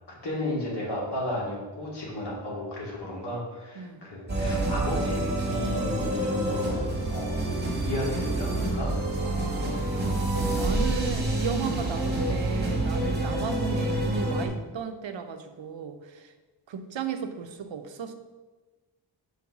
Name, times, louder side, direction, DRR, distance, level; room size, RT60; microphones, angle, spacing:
voice 1, 0.2-7.4 7.7-8.9 12.3-12.4, left 1 dB, 60° left, -4 dB, 2.4 m, -34 dB
sound 1, 4.3-14.5, right 1 dB, 25° right, 1.5 m, -27 dB
voice 2, 9.2-16.3 16.7-18.1, right 6 dB, 80° right, 7 dB, 0.8 m, -35 dB
5.8 x 4.7 x 5.8 m, 1.2 s
wide cardioid pair, 165°, 45 cm